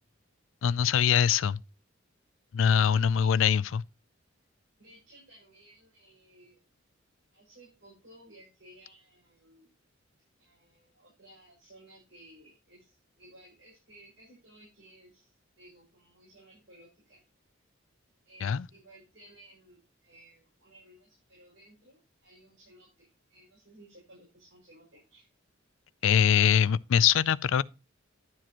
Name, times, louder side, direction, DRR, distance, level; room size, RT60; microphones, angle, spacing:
voice 1, 0.6-1.6 2.5-3.8 18.4-18.6 26.0-27.6, left 8 dB, 75° left, 0.4 m, -23 dB
voice 2, 2.6-3.4 4.8-6.6 7.3-9.7 10.4-17.2 18.2-25.3, right 1 dB, 65° right, 6.3 m, -57 dB
11.5 x 7.5 x 3.0 m
head